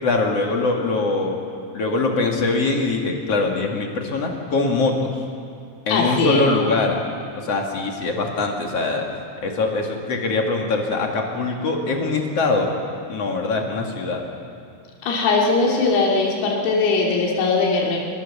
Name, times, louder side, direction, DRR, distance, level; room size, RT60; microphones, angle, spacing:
voice 1, 0.0-1.4 1.7-5.1 5.9-7.0 7.3-9.0 9.4-12.7 13.1-14.2, left 3 dB, 50° left, 1 dB, 1.9 m, -22 dB
voice 2, 5.9-6.4 15.0-18.0, left 3 dB, 85° left, -2 dB, 5.6 m, -20 dB
25.5 x 21.0 x 7.2 m, 2.6 s
omnidirectional pair, 5.9 m